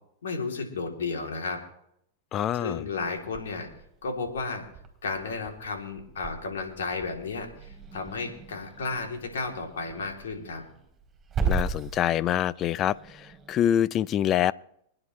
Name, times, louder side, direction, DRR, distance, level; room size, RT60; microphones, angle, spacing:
voice 1, 0.2-1.6 2.6-3.7 4.0-4.7 5.0-10.6, left 4 dB, 80° left, 2 dB, 3.2 m, -33 dB
voice 2, 2.3-2.8 11.5-14.5, left 10 dB, 35° left, 20 dB, 0.4 m, -25 dB
Growling / Hiss, 3.0-13.7, right 4 dB, 20° right, 3.5 m, -37 dB
26.0 x 9.8 x 3.3 m, 0.73 s
hypercardioid pair, 105°, 0 cm